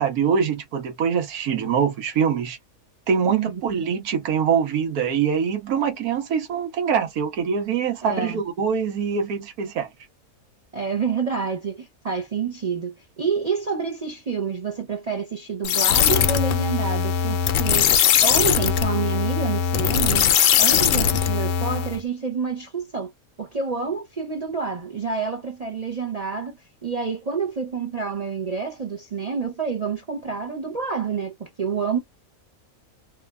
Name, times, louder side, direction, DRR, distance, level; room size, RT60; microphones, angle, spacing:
voice 1, 0.0-2.6 3.1-9.9, right 7 dB, 85° right, 1.3 m, -24 dB
voice 2, 3.3-3.6 8.0-8.4 10.7-20.3 20.6-23.1 23.4-32.0, right 5 dB, 50° right, 0.4 m, -28 dB
sound 1, 15.6-22.0, left 8 dB, 70° left, 0.9 m, -20 dB
3.1 x 2.2 x 2.2 m
omnidirectional pair, 1.6 m